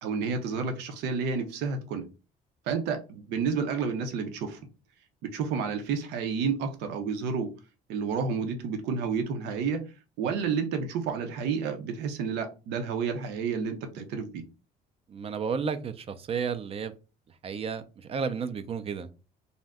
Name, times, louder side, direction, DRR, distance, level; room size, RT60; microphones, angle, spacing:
voice 1, 0.0-2.1 2.7-4.6 5.3-7.5 7.9-14.4, right 5 dB, 90° right, 0.7 m, -30 dB
voice 2, 15.1-16.9 17.4-19.1, right 6 dB, 35° right, 0.4 m, -32 dB
2.6 x 2.1 x 3.4 m
cardioid pair, 110°, 17 cm